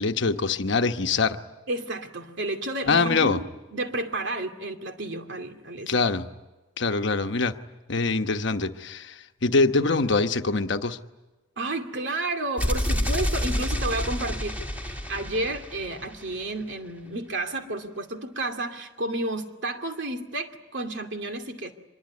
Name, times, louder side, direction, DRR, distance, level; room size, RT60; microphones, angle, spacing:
voice 1, 0.0-1.4 2.9-3.4 5.9-6.3 6.8-7.5 7.9-11.0, left 3 dB, 60° left, 7 dB, 1.1 m, -24 dB
voice 2, 1.7-3.5 3.7-5.9 11.6-21.7, right 2 dB, 65° right, 5 dB, 2.6 m, -31 dB
sound 1, 12.6-16.4, equal, 5° right, 2.3 m, -28 dB
25.0 x 22.0 x 9.5 m, 1.1 s
head